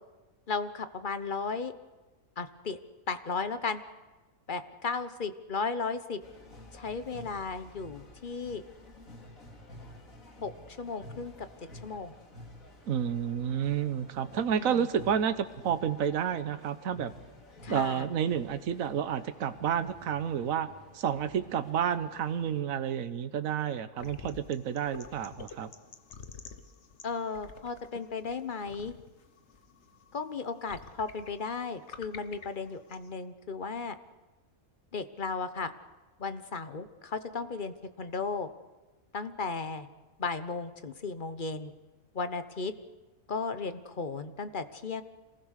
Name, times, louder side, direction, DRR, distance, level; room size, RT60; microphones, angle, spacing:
voice 1, 0.5-1.7 2.4-2.8 3.1-3.8 4.5-6.2 6.7-8.6 10.4-11.5 11.8-12.1 14.5-14.9 17.6-18.1 27.0-28.9 30.1-33.9 34.9-35.7 36.2-38.5 39.1-39.9 40.2-41.7 42.1-42.7 43.3-45.0, left 4 dB, 40° left, 11 dB, 1.1 m, -35 dB
sound 1, 6.2-22.6, left 1 dB, 70° left, 3.0 m, -51 dB
voice 2, 12.9-17.1 17.7-20.7 20.9-25.7, right 8 dB, 75° right, 11 dB, 1.3 m, -30 dB
sound 2, 24.0-33.1, left 5 dB, 55° left, 1.5 m, -50 dB
26.5 x 19.5 x 6.6 m, 1.2 s
omnidirectional pair, 1.5 m